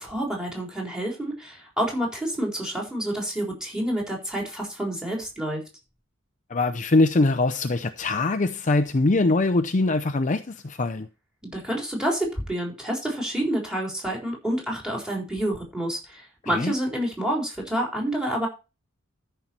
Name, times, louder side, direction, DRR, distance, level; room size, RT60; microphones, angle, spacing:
voice 1, 0.0-5.6 11.4-18.5, right 1 dB, 5° right, 4.0 m, -28 dB
voice 2, 6.5-11.1 16.5-16.7, left 2 dB, 40° left, 0.6 m, -22 dB
13.5 x 5.7 x 4.4 m
head